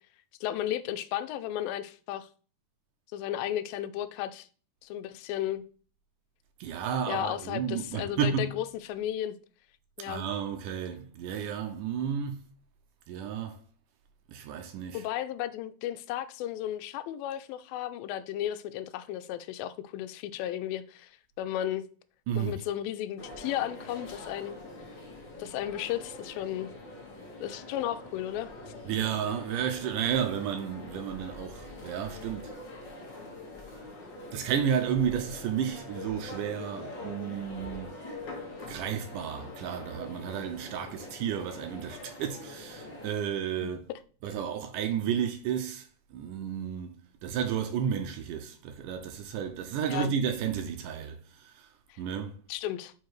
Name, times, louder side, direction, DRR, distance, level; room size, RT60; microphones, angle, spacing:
voice 1, 0.4-2.3 3.1-4.5 4.8-5.6 7.1-9.4 10.0-10.3 14.9-21.1 21.4-21.9 22.4-24.6 25.4-26.7 27.4-28.5 43.6-43.7 49.9-50.1 51.9-52.0 52.5-52.9, left 12 dB, 90° left, 2.3 m, -34 dB
voice 2, 6.6-8.5 10.0-12.4 13.1-13.6 14.3-15.0 22.3-22.6 28.9-32.5 34.3-37.9 38.7-43.9 44.2-52.4, right 8 dB, 80° right, 2.0 m, -32 dB
sound 1, 23.2-43.1, left 2 dB, 55° left, 1.2 m, -44 dB
5.5 x 4.6 x 4.6 m
omnidirectional pair, 4.1 m